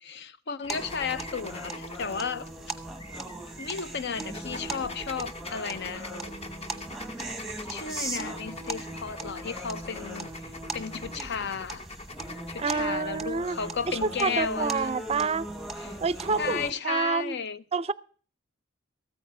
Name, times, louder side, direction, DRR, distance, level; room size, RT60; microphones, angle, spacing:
voice 1, 0.0-2.5 3.6-6.1 7.7-11.8 12.5-14.9 15.8-16.0 16.4-17.6, left 6 dB, 60° left, 0.7 m, -34 dB
sound 1, 0.6-12.9, left 2 dB, 30° left, 1.0 m, -44 dB
sound 2, 0.7-16.7, right 2 dB, ahead, 1.1 m, -38 dB
Bass guitar, 5.9-12.1, right 2 dB, 80° left, 5.9 m, -52 dB
voice 2, 12.6-13.6 13.9-15.5 16.0-17.4 17.7-17.9, right 5 dB, 30° right, 0.5 m, -28 dB
14.0 x 9.1 x 6.0 m
head